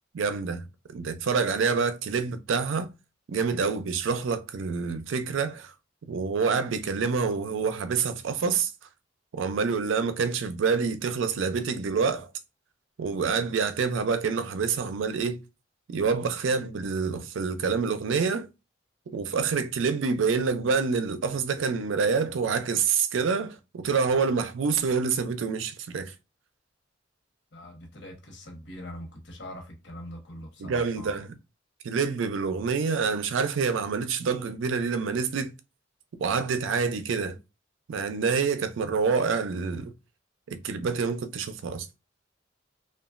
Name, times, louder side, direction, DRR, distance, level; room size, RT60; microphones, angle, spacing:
voice 1, 0.1-0.6 0.9-2.9 3.3-5.7 6.1-8.7 9.3-12.3 13.0-15.4 15.9-18.5 19.1-26.1 30.6-31.3 31.8-35.5 36.2-37.4 37.9-39.9 40.5-41.9, right 5 dB, 85° right, 0.4 m, -27 dB
voice 2, 27.5-31.2, equal, 65° left, 1.0 m, -43 dB
2.9 x 2.2 x 2.4 m
head